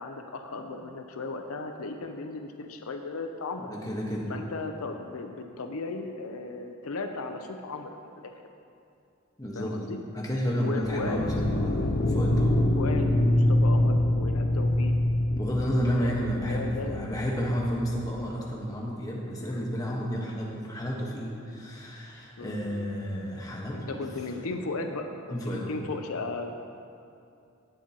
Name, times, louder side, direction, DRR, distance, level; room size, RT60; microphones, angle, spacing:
voice 1, 0.0-3.7 4.3-8.3 9.5-10.0 10.6-11.2 12.5-14.9 15.9-17.5 19.4-19.6 22.4-22.6 23.7-26.5, left 3 dB, 85° left, 5 dB, 0.7 m, -36 dB
voice 2, 3.6-4.3 9.4-9.8 10.1-12.6 15.3-24.0 24.4-24.5 25.3-25.7, equal, 15° left, -3 dB, 1.3 m, -31 dB
sound 1, 10.8-18.1, left 1 dB, 45° left, 0.6 m, -25 dB
18.0 x 7.5 x 3.0 m, 2.6 s
head